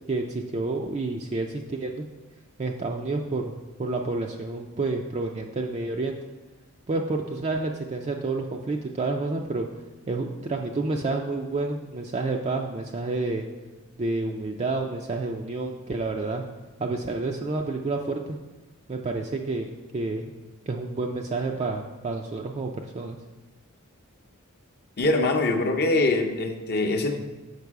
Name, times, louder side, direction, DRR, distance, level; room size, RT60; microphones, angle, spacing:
voice 1, 0.1-2.0 2.6-6.2 6.9-9.7 10.1-13.4 14.0-16.4 16.8-18.4 18.9-20.3 20.7-23.2, right 3 dB, 30° right, 2 dB, 0.4 m, -29 dB
voice 2, 25.0-27.2, left 2 dB, 45° left, 3 dB, 0.7 m, -23 dB
6.7 x 5.4 x 4.6 m, 1.2 s
head